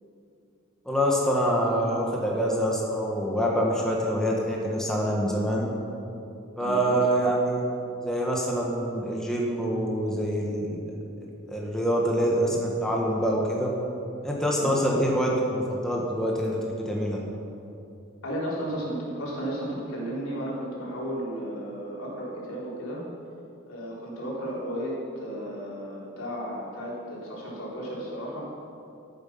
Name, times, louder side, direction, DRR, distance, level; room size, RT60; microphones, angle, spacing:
voice 1, 0.8-5.7 6.6-7.6 8.0-10.8 11.2-13.7 14.2-17.2, equal, 5° left, -3 dB, 1.4 m, -26 dB
voice 2, 6.6-7.0 14.6-14.7 18.2-23.0 23.7-28.4, equal, 80° left, -5 dB, 3.7 m, -34 dB
14.0 x 9.0 x 5.7 m, 2.7 s
head